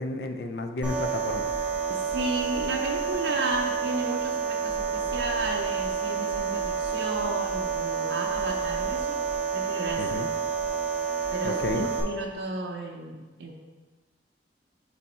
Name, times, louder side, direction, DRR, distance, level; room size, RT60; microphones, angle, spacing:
voice 1, 0.0-1.5 10.0-10.3 11.4-11.9, left 2 dB, 60° left, 6 dB, 0.4 m, -31 dB
sound 1, 0.8-12.0, right 6 dB, 5° right, 0.9 m, -29 dB
voice 2, 1.9-9.2 9.5-10.2 11.3-13.5, right 2 dB, 75° right, 0 dB, 0.6 m, -33 dB
7.0 x 3.4 x 4.1 m, 1.3 s
head